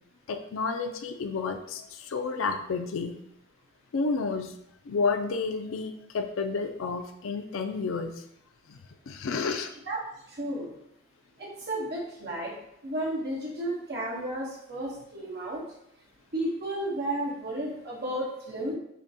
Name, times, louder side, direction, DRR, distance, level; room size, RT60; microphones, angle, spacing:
voice 1, 0.3-3.1 3.9-4.5 4.9-8.1 8.7-8.8 9.1-9.7, left 4 dB, 80° left, 7 dB, 0.4 m, -30 dB
voice 2, 10.4-10.7 11.4-12.5 12.8-15.6 16.3-18.8, right 1 dB, 55° right, -4 dB, 1.2 m, -32 dB
6.0 x 2.2 x 2.8 m, 0.79 s
head